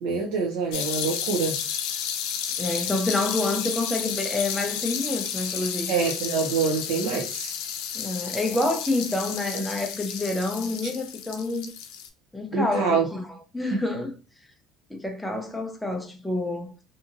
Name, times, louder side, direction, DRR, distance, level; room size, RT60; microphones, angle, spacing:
voice 1, 0.0-1.6 2.6-2.8 5.9-7.5 12.5-13.1, right 5 dB, 80° right, 0.6 m, -26 dB
sound 1, 0.7-12.1, left 8 dB, 85° left, 0.4 m, -32 dB
voice 2, 2.6-5.9 7.9-11.7 12.3-13.3 13.5-14.1 14.9-16.7, left 2 dB, 5° left, 0.5 m, -28 dB
2.7 x 2.7 x 2.5 m
cardioid pair, 160°, 0 cm